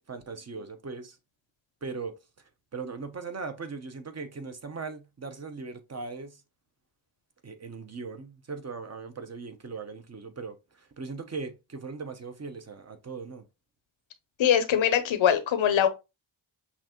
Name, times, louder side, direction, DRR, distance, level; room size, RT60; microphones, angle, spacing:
voice 1, 0.1-1.2 1.8-2.2 2.7-6.4 7.4-13.4, right 4 dB, 30° right, 0.9 m, -39 dB
voice 2, 14.4-15.9, left 9 dB, 70° left, 0.8 m, -22 dB
5.9 x 2.5 x 3.0 m
cardioid pair, 80°, 48 cm